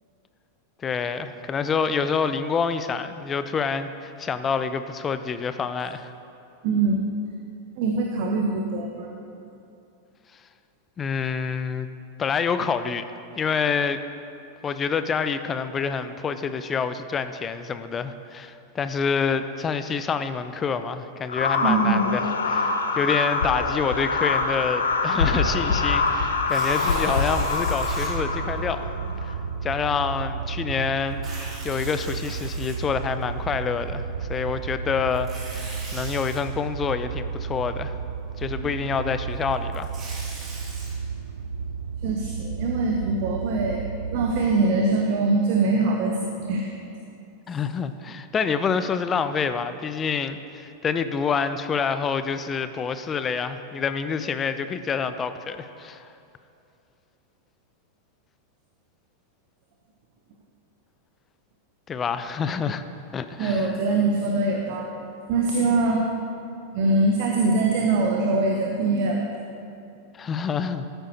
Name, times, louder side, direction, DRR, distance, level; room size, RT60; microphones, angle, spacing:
voice 1, 0.8-6.1 11.0-11.9 12.2-13.0 13.4-14.0 14.6-28.9 29.2-29.3 29.6-31.2 31.6-38.0 38.4-39.9 40.2-40.3 47.5-56.1 61.9-62.8 63.1-63.8 70.1-70.9, left 6 dB, 20° left, 11 dB, 0.5 m, -27 dB
voice 2, 6.6-7.0 7.8-9.1 21.6-22.1 38.6-38.7 42.0-46.7 63.4-66.0 66.7-69.3, right 3 dB, 45° right, 1 dB, 0.8 m, -23 dB
sound 1, 21.3-29.3, left 4 dB, 70° left, 0.7 m, -24 dB
Tearing, 26.4-28.1 28.8-28.9 31.1-33.2 35.1-36.4 39.5-40.9, right 2 dB, 25° right, 2.1 m, -39 dB
sound 2, 27.8-44.6, right 5 dB, 65° right, 0.4 m, -33 dB
13.5 x 8.9 x 2.9 m, 2.6 s
figure-of-eight pair, 90°, 0 cm